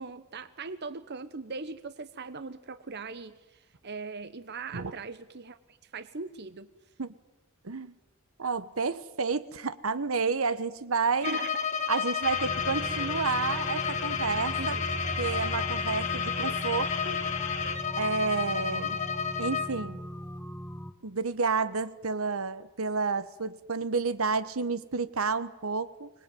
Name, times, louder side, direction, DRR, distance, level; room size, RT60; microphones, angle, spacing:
voice 1, 0.0-6.7 11.2-11.5 14.6-14.8, right 4 dB, 50° right, 12 dB, 1.0 m, -40 dB
voice 2, 8.4-11.4 11.9-14.8 15.2-17.2 17.9-19.0 19.4-20.0 21.0-26.1, right 4 dB, 70° right, 14 dB, 1.1 m, -30 dB
Bowed string instrument, 11.2-19.8, left 6 dB, 35° left, 1.6 m, -32 dB
sound 1, 12.2-17.8, left 5 dB, 80° left, 2.4 m, -36 dB
sound 2, 12.4-20.9, equal, 10° left, 1.1 m, -40 dB
25.5 x 20.5 x 9.3 m, 1.1 s
head